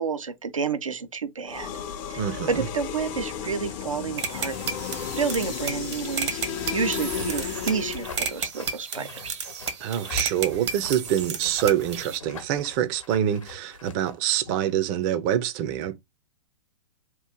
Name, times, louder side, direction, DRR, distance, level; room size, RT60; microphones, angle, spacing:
voice 1, 0.0-1.7 2.1-4.6 5.2-9.4, right 5 dB, 85° right, 0.6 m, -30 dB
sound 1, 1.5-8.4, left 8 dB, 35° left, 0.5 m, -33 dB
voice 2, 2.2-2.6 9.8-15.9, right 10 dB, 35° right, 0.5 m, -26 dB
sound 2, 4.2-12.2, right 6 dB, 60° right, 0.8 m, -33 dB
sound 3, 6.5-14.7, left 4 dB, 75° left, 0.9 m, -42 dB
2.9 x 2.4 x 3.5 m
figure-of-eight pair, 115°, 17 cm